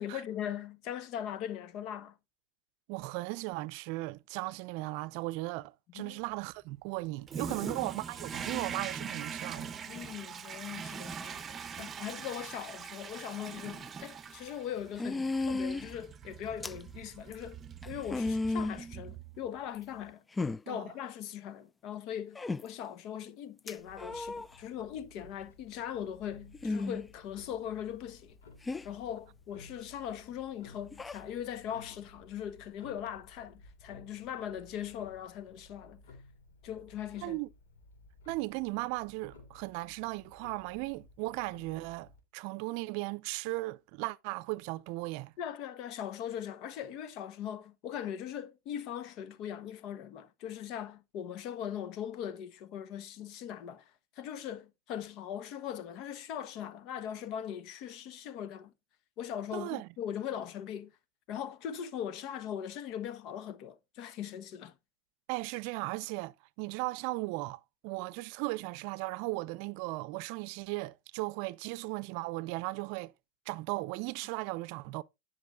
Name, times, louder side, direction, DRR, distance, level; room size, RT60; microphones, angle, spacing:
voice 1, 0.0-2.2 5.9-6.2 7.5-7.8 9.9-17.6 17.8-20.2 20.7-28.4 28.8-36.0 36.6-37.4 45.4-53.9 54.2-58.7 59.2-60.9 61.3-64.8, left 9 dB, 55° left, 1.2 m, -40 dB
voice 2, 2.9-9.8 20.7-20.9 37.2-37.5 38.3-45.3 59.5-59.9 65.3-73.1 73.5-75.0, right 22 dB, 60° right, 0.5 m, -37 dB
Toilet flush, 7.3-19.6, right 6 dB, 30° right, 0.8 m, -43 dB
sound 1, 13.8-13.9 15.0-15.9 16.6-16.8 17.3-17.4 17.8-18.8 19.7-19.8 20.4-20.6 22.3-22.6 23.7-24.5 26.5-27.1 28.6-28.9 30.9-31.2, left 3 dB, 15° left, 0.4 m, -33 dB
Clock, 23.8-42.2, left 3 dB, 80° left, 3.3 m, -57 dB
10.5 x 6.1 x 3.7 m
hypercardioid pair, 100°, 0 cm